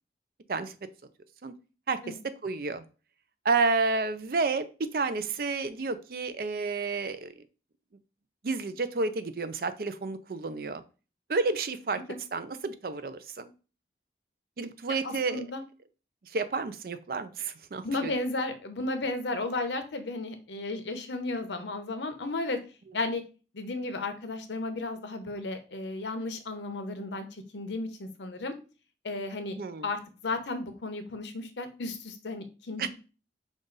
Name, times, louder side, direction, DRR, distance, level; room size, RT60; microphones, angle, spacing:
voice 1, 1.9-2.8 3.4-7.3 8.4-10.8 11.3-12.0 12.3-13.5 14.6-15.4 16.3-18.1 29.6-29.9 32.8-32.9, right 4 dB, 55° right, 11 dB, 0.5 m, -30 dB
voice 2, 15.0-15.6 17.8-22.6 22.9-23.2 23.5-28.5 29.0-29.6 29.8-32.9, left 2 dB, 85° left, 8 dB, 0.8 m, -34 dB
5.4 x 2.4 x 3.9 m, 0.34 s
head